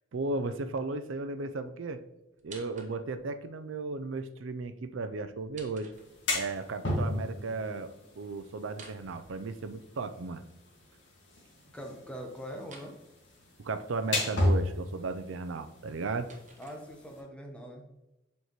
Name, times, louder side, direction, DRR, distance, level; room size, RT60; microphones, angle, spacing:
voice 1, 0.1-2.0 2.4-5.9 6.3-10.4 13.6-16.3, right 3 dB, 85° right, 10 dB, 0.5 m, -35 dB
sound 1, 2.4-3.3 5.3-6.5 8.6-10.0 12.6-13.0 15.7-17.3, right 4 dB, 40° right, 1.1 m, -54 dB
sound 2, 5.9-17.2, left 1 dB, 65° left, 1.9 m, -35 dB
voice 2, 11.7-13.0 16.6-17.9, equal, 5° left, 2 dB, 1.0 m, -42 dB
8.0 x 4.6 x 3.0 m, 0.95 s
head